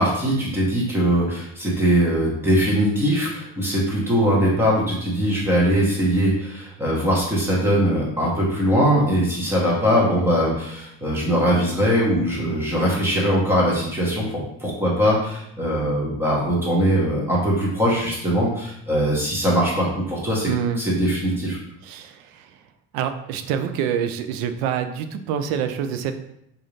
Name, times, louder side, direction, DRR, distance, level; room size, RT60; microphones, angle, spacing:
voice 1, 0.0-20.5 20.8-21.6, equal, 5° right, -5 dB, 1.0 m, -21 dB
voice 2, 20.5-20.8 21.8-22.6 22.9-26.1, right 8 dB, 75° right, 8 dB, 0.5 m, -26 dB
4.0 x 2.6 x 3.2 m, 0.75 s
cardioid pair, 150°, 34 cm